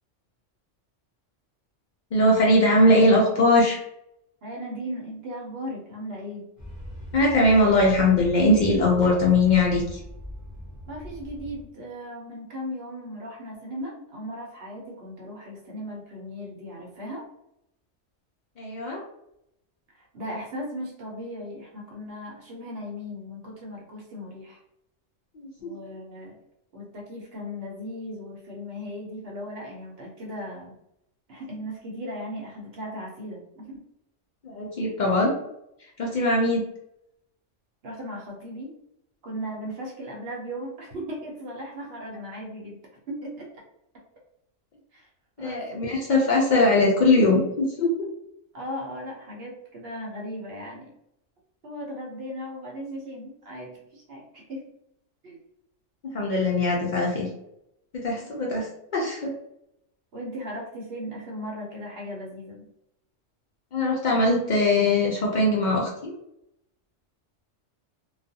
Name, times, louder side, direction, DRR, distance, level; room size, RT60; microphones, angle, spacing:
voice 1, 2.1-3.8 7.1-10.0 18.6-19.0 25.3-25.7 34.4-35.3 36.0-36.7 45.4-47.9 56.0-57.3 57.9-59.3 63.7-66.1, left 2 dB, 65° left, -2 dB, 0.4 m, -21 dB
voice 2, 4.4-6.4 10.9-17.2 19.9-24.6 25.6-26.4 26.7-30.8 31.3-33.8 37.8-38.7 39.2-42.8 43.1-43.5 44.9-45.1 45.4-45.6 48.5-50.9 51.6-54.6 55.2-55.4 58.2-58.3 60.1-62.7, equal, 60° right, -2 dB, 0.9 m, -37 dB
sound 1, 6.6-11.6, equal, 20° right, 0.4 m, -40 dB
2.4 x 2.2 x 2.6 m, 0.81 s
omnidirectional pair, 1.3 m